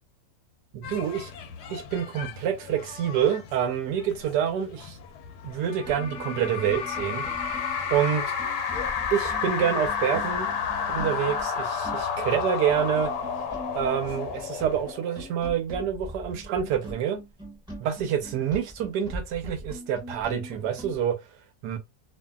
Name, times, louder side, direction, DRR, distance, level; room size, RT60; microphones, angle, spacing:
voice 1, 0.7-1.3 1.7-5.0 5.4-7.2 7.9-8.2 9.1-10.5 10.9-13.1 13.7-17.2 17.8-21.2 21.6-21.8, right 9 dB, 75° right, 1.1 m, -27 dB
sound 1, 0.8-14.8, left 7 dB, 70° left, 1.1 m, -45 dB
sound 2, 5.4-5.5 5.8-21.0, equal, 5° right, 0.9 m, -42 dB
sound 3, 5.7-15.3, left 6 dB, 90° left, 1.3 m, -30 dB
2.7 x 2.6 x 2.2 m
omnidirectional pair, 1.9 m